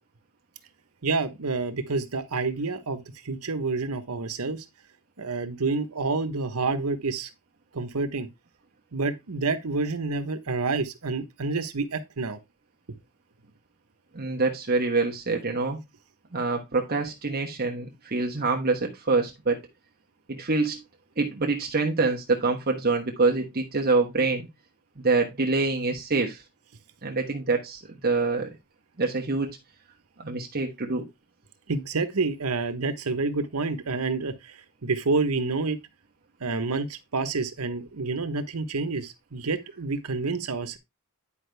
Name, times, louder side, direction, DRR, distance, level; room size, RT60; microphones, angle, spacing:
voice 1, 1.0-4.6 5.2-7.3 7.7-8.3 8.9-12.4 31.7-35.8 36.4-40.8, right 3 dB, 85° right, 1.1 m, -28 dB
voice 2, 14.1-15.8 16.3-19.6 20.3-20.8 21.2-24.5 25.0-26.4 27.0-28.5 29.0-29.6 30.2-31.0, right 3 dB, 45° right, 1.1 m, -25 dB
9.9 x 5.1 x 3.3 m
head